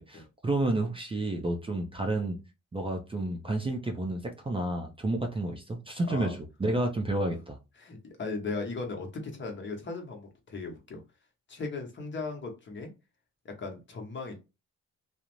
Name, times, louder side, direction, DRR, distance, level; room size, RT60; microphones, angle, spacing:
voice 1, 0.0-2.4 2.7-7.6, right 2 dB, 20° right, 0.5 m, -30 dB
voice 2, 6.1-6.4 7.8-11.0 11.5-12.9 13.4-14.4, left 3 dB, 40° left, 0.9 m, -37 dB
2.4 x 2.0 x 3.0 m
cardioid pair, 90°, 30 cm